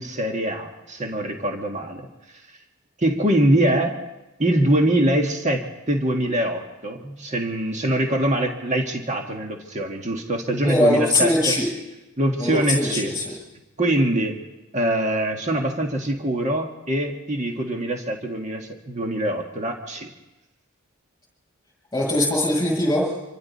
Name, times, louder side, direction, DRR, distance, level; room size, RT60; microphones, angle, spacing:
voice 1, 0.0-2.1 3.0-3.9 4.4-11.6 12.2-13.1 13.8-14.3 14.7-20.1, right 1 dB, 30° right, 2 dB, 1.6 m, -23 dB
voice 2, 10.6-11.7 12.4-13.3 21.9-23.1, left 1 dB, 15° left, -2 dB, 7.9 m, -21 dB
26.0 x 24.0 x 4.2 m, 1.0 s
head